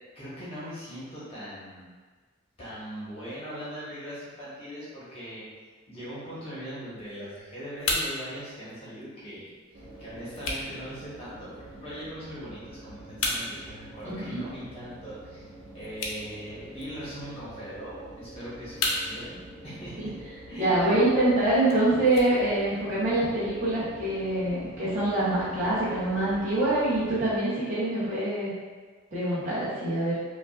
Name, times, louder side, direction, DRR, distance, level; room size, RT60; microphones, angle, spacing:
voice 1, 0.1-1.9 2.6-5.4 5.9-9.5 10.0-15.4 15.7-19.4 19.6-20.1 20.5-20.9, equal, 30° left, -10 dB, 1.1 m, -40 dB
sound 1, 7.0-23.0, left 2 dB, 85° left, 0.6 m, -38 dB
sound 2, 9.7-27.4, right 1 dB, 80° right, 1.1 m, -46 dB
voice 2, 14.0-14.4 20.0-20.1 20.6-28.5 29.1-30.2, right 1 dB, 40° right, -11 dB, 0.9 m, -25 dB
5.1 x 2.5 x 2.4 m, 1.4 s
head